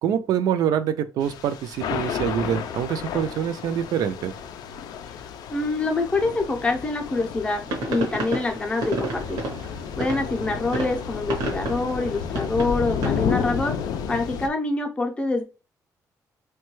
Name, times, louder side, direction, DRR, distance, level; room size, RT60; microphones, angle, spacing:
voice 1, 0.0-4.3, right 9 dB, 70° right, 0.3 m, -25 dB
Thunder / Rain, 1.2-14.5, left 7 dB, 75° left, 0.3 m, -32 dB
voice 2, 5.5-9.4 10.0-13.7 14.1-15.4, left 3 dB, 15° left, 0.5 m, -25 dB
sound 1, 7.6-13.3, right 2 dB, 85° right, 0.8 m, -31 dB
3.0 x 2.2 x 3.0 m
cardioid pair, 165°, 7 cm